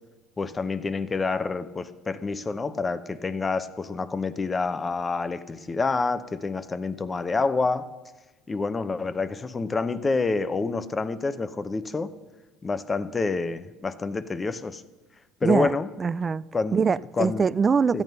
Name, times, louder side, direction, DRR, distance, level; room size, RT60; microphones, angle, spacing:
voice 1, 0.4-7.8 8.5-12.1 12.6-14.8 15.4-15.9 16.5-16.8 17.1-17.5 17.9-18.0, left 4 dB, 25° left, 0.8 m, -27 dB
voice 2, 16.0-16.4 16.7-18.0, right 5 dB, 30° right, 0.3 m, -23 dB
13.5 x 9.5 x 5.5 m
hypercardioid pair, 70°, 0 cm